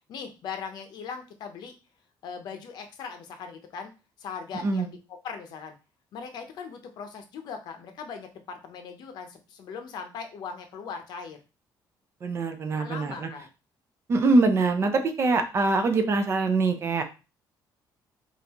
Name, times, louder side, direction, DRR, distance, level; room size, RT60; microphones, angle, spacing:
voice 1, 0.1-1.7 2.2-3.9 4.2-5.7 6.1-11.4 12.8-13.5, left 6 dB, 60° left, 6 dB, 0.8 m, -39 dB
voice 2, 12.2-13.3 14.1-17.0, right 3 dB, 35° right, 7 dB, 0.6 m, -23 dB
5.4 x 2.6 x 3.0 m, 0.31 s
cardioid pair, 170°, 8 cm